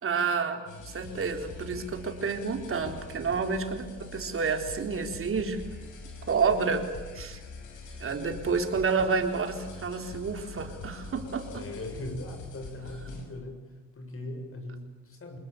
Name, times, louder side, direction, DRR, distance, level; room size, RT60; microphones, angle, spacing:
voice 1, 0.0-5.6 6.3-6.9 7.1-7.4 8.0-11.6, right 5 dB, 45° right, 4 dB, 3.9 m, -29 dB
sound 1, 0.7-13.3, left 3 dB, 85° left, 6.1 m, -44 dB
voice 2, 11.5-13.6 13.9-15.4, left 1 dB, 45° left, 5 dB, 7.2 m, -39 dB
26.5 x 20.5 x 9.0 m, 1.3 s
cardioid pair, 90°, 30 cm